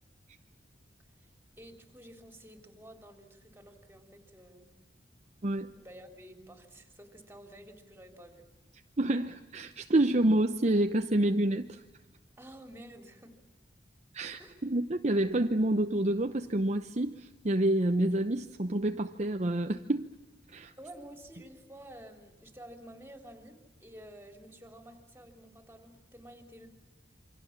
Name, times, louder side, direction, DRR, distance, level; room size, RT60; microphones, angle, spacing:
voice 1, 1.2-4.7 5.7-8.4 12.4-13.4 14.4-14.6 20.8-26.7, right 1 dB, 10° right, 5 dB, 3.5 m, -51 dB
voice 2, 5.4-5.7 9.0-11.8 14.1-20.1 20.5-20.7, right 1 dB, 40° right, 6 dB, 0.9 m, -28 dB
28.0 x 25.0 x 7.4 m, 1.2 s
head